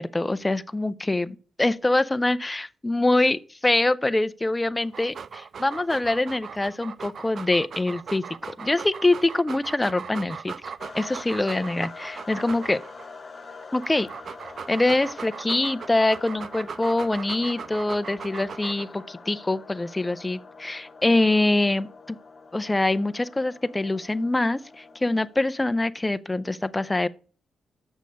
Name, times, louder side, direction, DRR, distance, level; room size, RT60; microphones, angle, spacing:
voice 1, 0.0-10.5 10.9-12.8 13.7-14.1 14.7-22.2 22.5-27.1, left 2 dB, 15° left, 0.4 m, -24 dB
Dog, 4.8-13.1 13.6-19.0, right 6 dB, 55° right, 0.3 m, -39 dB
sound 1, 10.8-25.5, left 4 dB, 40° left, 1.1 m, -45 dB
6.6 x 6.3 x 5.2 m
cardioid pair, 90°, 0 cm